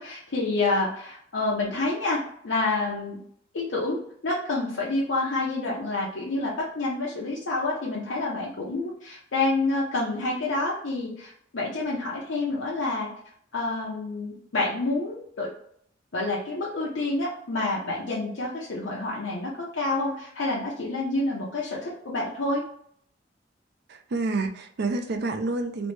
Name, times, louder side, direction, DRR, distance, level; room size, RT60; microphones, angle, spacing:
voice 1, 0.0-2.2 2.4-3.2 3.5-13.1 13.5-15.5 16.1-22.6, left 2 dB, 80° left, -5 dB, 0.7 m, -28 dB
voice 2, 23.9-25.9, right 3 dB, 60° right, 7 dB, 0.5 m, -28 dB
3.1 x 3.1 x 3.1 m, 0.65 s
head